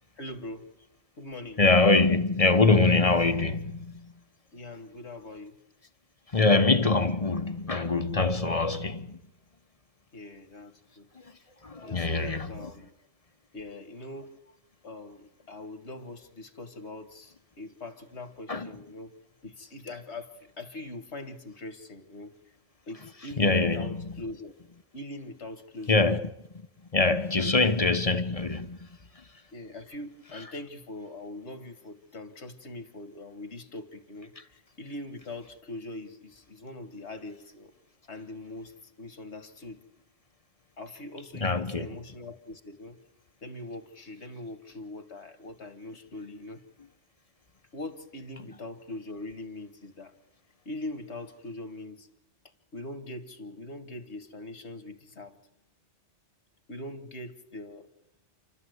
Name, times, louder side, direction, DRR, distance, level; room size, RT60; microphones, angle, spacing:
voice 1, 0.2-0.6 1.2-1.6 4.5-5.6 10.1-11.1 11.8-12.9 13.5-14.3 14.8-19.1 19.4-22.3 22.9-24.5 24.9-26.0 27.4-27.6 29.5-37.7 38.1-39.8 40.8-43.0 43.4-46.6 47.7-50.1 50.7-52.1 52.7-55.4 56.7-57.9, left 2 dB, 70° left, 2.0 m, -42 dB
voice 2, 1.6-4.1 6.3-9.2 11.6-12.5 18.5-18.7 23.4-24.1 25.9-26.3 26.9-28.8 41.4-41.9, left 3 dB, 30° left, 1.1 m, -23 dB
29.0 x 13.0 x 8.0 m
omnidirectional pair, 1.2 m